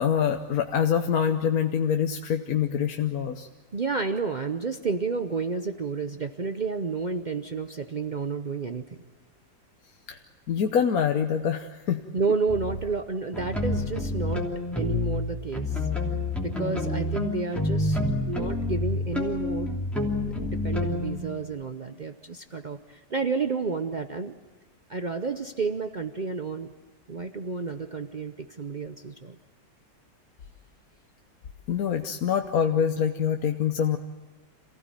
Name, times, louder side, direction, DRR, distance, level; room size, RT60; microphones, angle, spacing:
voice 1, 0.0-3.5 10.1-10.2 10.5-12.0 31.7-34.0, left 8 dB, 60° left, 5 dB, 1.2 m, -25 dB
voice 2, 3.7-9.0 12.1-14.4 14.8-15.9 16.4-19.8 20.4-24.3 24.9-26.7 27.1-29.4, right 4 dB, 75° right, 8 dB, 0.4 m, -31 dB
sound 1, 12.5-12.8 13.3-15.2 15.5-21.2, left 2 dB, ahead, 2.9 m, -28 dB
27.0 x 16.0 x 9.0 m, 1.3 s
omnidirectional pair, 2.0 m